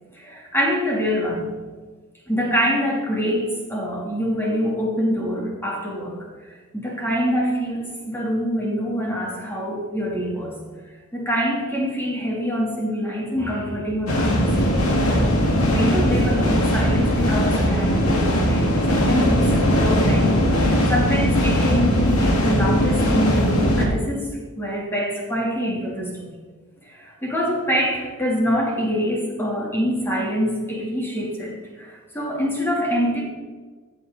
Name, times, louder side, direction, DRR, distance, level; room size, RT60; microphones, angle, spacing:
voice 1, 0.1-1.5 2.3-10.6 11.1-14.5 15.6-24.3 24.6-26.4 26.8-33.2, equal, 10° left, -3 dB, 2.9 m, -25 dB
sound 1, 14.1-23.9, equal, 75° left, 2.1 m, -19 dB
14.5 x 8.1 x 4.0 m, 1.4 s
head